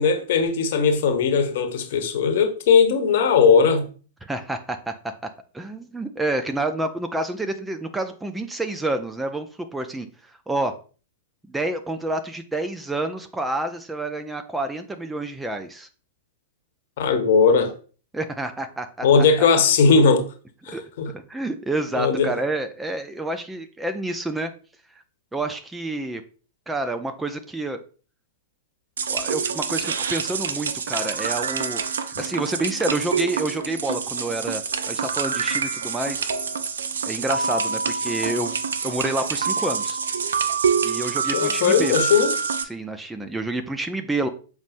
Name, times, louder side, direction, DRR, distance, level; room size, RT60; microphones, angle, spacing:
voice 1, 0.0-3.9 17.0-17.7 19.0-20.2 20.7-21.1 21.9-22.4 41.3-42.3, left 5 dB, 55° left, 1.1 m, -18 dB
voice 2, 4.2-5.1 5.5-10.8 11.5-15.9 18.1-19.5 20.7-20.8 21.1-24.5 25.3-26.2 26.7-27.8 29.1-31.8 32.2-36.3 37.0-38.6 38.8-40.0 40.8-41.9 42.6-44.3, right 2 dB, 5° right, 0.6 m, -28 dB
sound 1, 29.0-42.6, right 6 dB, 65° right, 0.6 m, -26 dB
7.1 x 5.1 x 2.6 m
figure-of-eight pair, 100°, 0 cm